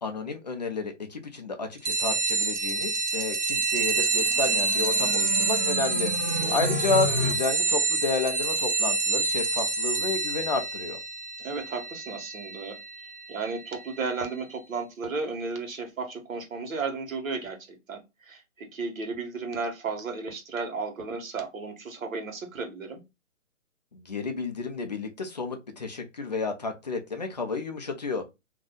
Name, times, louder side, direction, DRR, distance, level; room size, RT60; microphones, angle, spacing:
voice 1, 0.0-11.0 23.9-28.3, left 3 dB, 35° left, 0.4 m, -31 dB
sound 1, 1.9-14.0, right 3 dB, 60° right, 0.9 m, -27 dB
sound 2, 4.0-7.3, equal, 5° right, 0.9 m, -32 dB
voice 2, 6.2-6.8 11.4-12.8 13.3-23.0, right 4 dB, 80° right, 1.2 m, -34 dB
2.6 x 2.2 x 3.5 m
hypercardioid pair, 155°, 40 cm